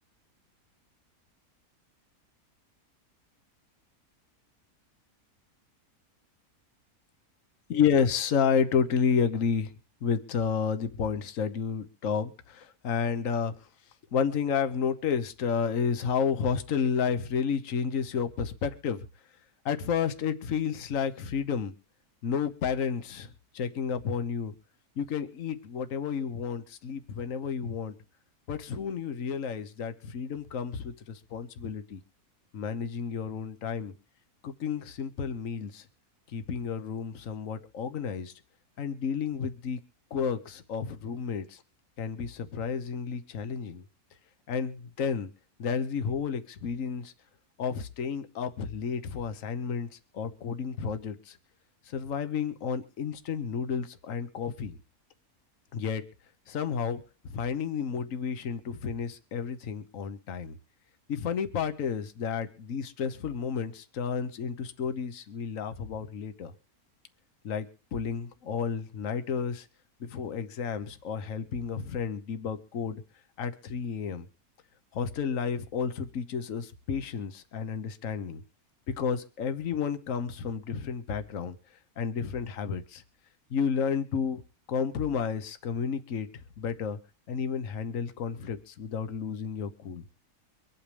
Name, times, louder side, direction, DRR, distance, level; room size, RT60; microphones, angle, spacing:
voice 1, 7.7-9.7 10.0-13.5 14.1-19.0 19.6-21.7 22.2-24.5 25.0-27.9 28.5-32.0 32.5-33.9 34.4-35.8 36.3-38.3 38.8-39.8 40.1-41.6 42.0-43.8 44.5-45.3 45.6-47.1 47.6-49.9 50.1-51.4 51.9-54.8 55.7-56.0 56.5-60.6 61.1-66.5 67.4-69.7 70.0-73.0 73.4-74.3 74.9-78.4 78.9-81.5 82.0-83.0 83.5-84.4 84.7-86.3 86.6-87.0 87.3-90.0, left 6 dB, 60° left, 10 dB, 1.4 m, -31 dB
24.5 x 8.6 x 3.3 m, 0.37 s
omnidirectional pair, 1.6 m